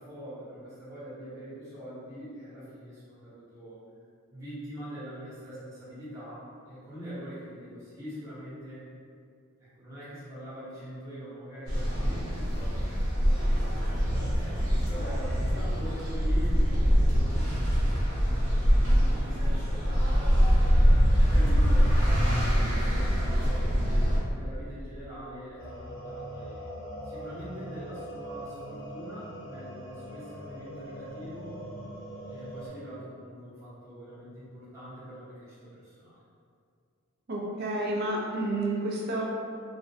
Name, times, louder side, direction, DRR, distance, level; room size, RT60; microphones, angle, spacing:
voice 1, 0.0-3.8 4.3-8.8 9.6-18.3 19.0-20.7 21.2-26.6 27.0-31.6 32.2-36.2, equal, 15° right, -13 dB, 0.9 m, -43 dB
sound 1, 11.7-24.2, equal, 80° right, 0.9 m, -24 dB
sound 2, 25.6-32.7, right 1 dB, 65° left, 0.5 m, -41 dB
voice 2, 37.3-39.2, right 2 dB, 50° right, -3 dB, 0.4 m, -30 dB
2.5 x 2.1 x 2.6 m, 2.3 s
head